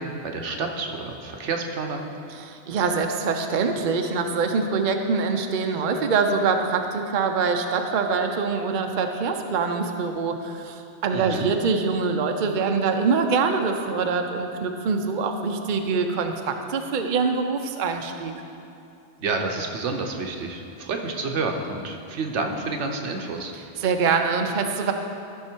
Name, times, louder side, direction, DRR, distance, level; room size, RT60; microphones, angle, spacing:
voice 1, 0.0-2.0 11.1-11.5 19.2-23.5, right 3 dB, 85° right, 3 dB, 1.2 m, -29 dB
voice 2, 2.3-18.3 23.8-24.9, right 5 dB, 50° right, 4 dB, 0.7 m, -24 dB
14.0 x 5.6 x 4.5 m, 2.6 s
omnidirectional pair, 1.1 m